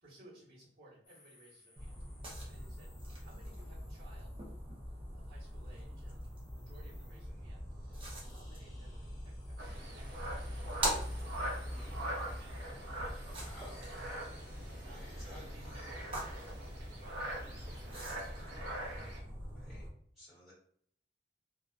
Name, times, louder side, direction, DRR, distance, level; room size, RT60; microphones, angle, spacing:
voice 1, 0.0-2.0 2.5-2.9 3.2-4.4 5.1-8.0 8.3-9.5 9.9-11.0 11.5-12.7 14.7-17.2 17.6-18.6, right 1 dB, 60° right, -9 dB, 1.0 m, -60 dB
sound 1, 1.0-18.6, left 2 dB, 50° left, 1.0 m, -63 dB
sound 2, 1.8-19.9, equal, 30° right, 0.6 m, -43 dB
sound 3, 9.6-19.2, right 1 dB, 80° right, 0.8 m, -44 dB
voice 2, 11.7-12.4 13.3-13.9 14.8-15.4 19.5-19.8 20.2-20.5, equal, ahead, -10 dB, 1.0 m, -56 dB
2.4 x 2.2 x 2.4 m, 0.63 s
head